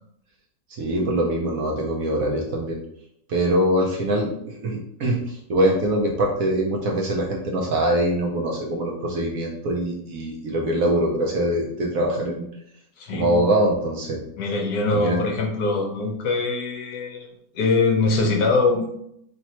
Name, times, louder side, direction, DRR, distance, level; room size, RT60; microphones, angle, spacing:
voice 1, 0.8-2.8 3.3-12.5 13.1-14.2 14.9-15.2, right 1 dB, 65° right, -1 dB, 1.0 m, -23 dB
voice 2, 13.0-13.4 14.4-17.3 17.5-18.9, left 3 dB, 65° left, 1 dB, 1.1 m, -22 dB
3.3 x 2.9 x 4.2 m, 0.73 s
omnidirectional pair, 1.9 m